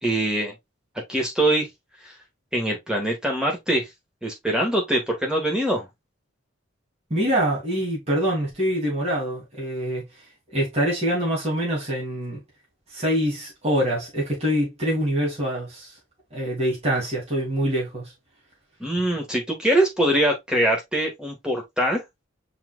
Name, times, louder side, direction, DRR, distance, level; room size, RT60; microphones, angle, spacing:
voice 1, 0.0-0.5 1.1-1.7 2.0-2.1 2.5-3.9 4.2-5.9 18.8-22.0, right 1 dB, 5° right, 1.5 m, -23 dB
voice 2, 7.1-10.0 10.5-12.4 12.9-15.9 16.3-18.1, equal, 30° right, 2.6 m, -25 dB
5.7 x 4.0 x 2.3 m
head